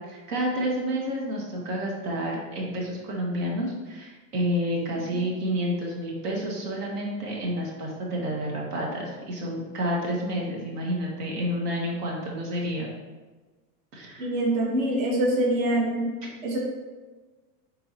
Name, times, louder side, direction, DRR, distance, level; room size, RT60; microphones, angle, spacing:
voice 1, 0.1-12.9 13.9-14.3, equal, 75° right, -2 dB, 2.0 m, -29 dB
voice 2, 14.2-16.1 16.4-16.6, right 1 dB, 60° right, -1 dB, 1.5 m, -24 dB
9.7 x 3.9 x 2.9 m, 1.3 s
supercardioid pair, 175°, 47 cm